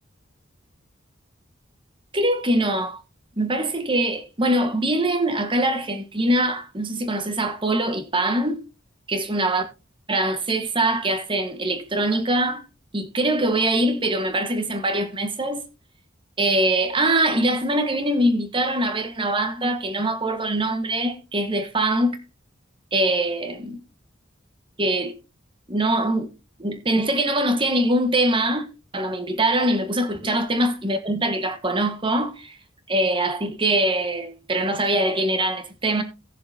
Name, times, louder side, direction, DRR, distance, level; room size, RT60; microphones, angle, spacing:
voice 1, 2.1-3.0 3.4-8.6 9.1-9.6 10.1-12.6 12.9-15.6 16.4-22.2 22.9-23.8 24.8-25.1 25.7-26.3 26.6-28.6 28.9-32.6 32.9-36.0, right 1 dB, 25° right, 1.3 m, -23 dB
18.0 x 6.7 x 2.7 m
head